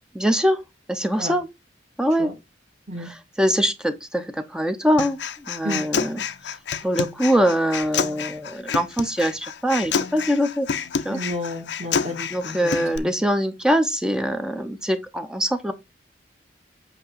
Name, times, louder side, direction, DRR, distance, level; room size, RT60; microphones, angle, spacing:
voice 1, 0.1-0.6 0.9-1.5 2.0-2.3 3.0-5.2 5.5-6.2 6.8-10.7 11.0-11.2 12.3-15.7, equal, 5° right, 0.6 m, -23 dB
Human voice, 5.0-13.0, left 6 dB, 70° left, 0.6 m, -28 dB
voice 2, 11.1-12.7 13.0-13.1, left 1 dB, 35° right, 1.8 m, -32 dB
8.2 x 2.9 x 5.6 m
head